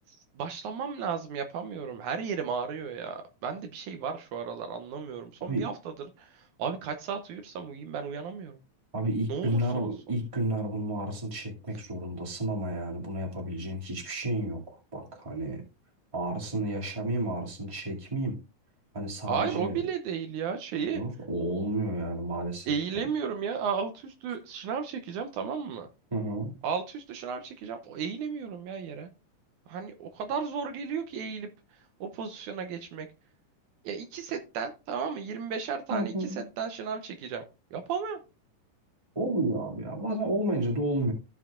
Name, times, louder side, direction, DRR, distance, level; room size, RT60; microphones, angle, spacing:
voice 1, 0.1-5.7 6.2-8.6 9.3-9.9 19.3-21.0 22.7-25.9 26.6-29.1 29.7-31.5 32.0-33.1 33.8-36.1 36.6-37.4 37.7-38.2, right 6 dB, 75° right, 7 dB, 2.1 m, -34 dB
voice 2, 8.9-15.6 16.1-18.3 18.9-19.8 20.8-22.7 26.1-26.5 35.9-36.4 39.1-41.1, right 1 dB, 10° right, -1 dB, 1.8 m, -31 dB
15.0 x 5.7 x 2.4 m, 0.29 s
omnidirectional pair, 3.7 m